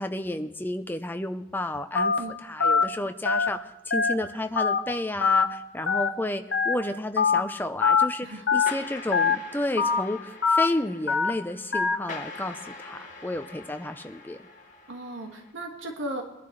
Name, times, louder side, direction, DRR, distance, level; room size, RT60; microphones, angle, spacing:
voice 1, 0.0-2.1 2.4-8.3 8.5-14.4, left 1 dB, 10° left, 7 dB, 0.7 m, -31 dB
Telephone, 2.0-2.2 2.6-2.8 3.3-3.5 3.9-4.1 4.6-4.8 5.2-5.4 5.9-6.1 6.5-6.7 7.2-7.4 7.8-8.0 8.5-8.7 9.1-9.4 9.8-10.0 10.4-10.7 11.1-11.3 11.7-12.0, left 5 dB, 65° left, 1.1 m, -22 dB
voice 2, 8.2-8.7 14.9-16.2, right 1 dB, 80° right, 1 dB, 2.0 m, -36 dB
sound 1, 8.7-15.5, left 3 dB, 40° left, 1.7 m, -43 dB
22.5 x 11.0 x 3.3 m, 1.0 s
head